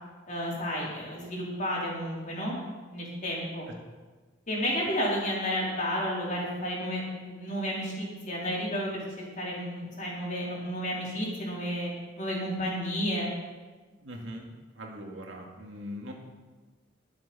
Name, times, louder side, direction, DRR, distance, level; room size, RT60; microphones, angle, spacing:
voice 1, 0.3-2.6 2.9-3.7 4.5-13.3, equal, 40° left, -4 dB, 4.1 m, -32 dB
voice 2, 14.0-14.5 14.8-16.1, equal, 75° right, 0 dB, 2.3 m, -41 dB
21.5 x 7.7 x 4.4 m, 1.3 s
head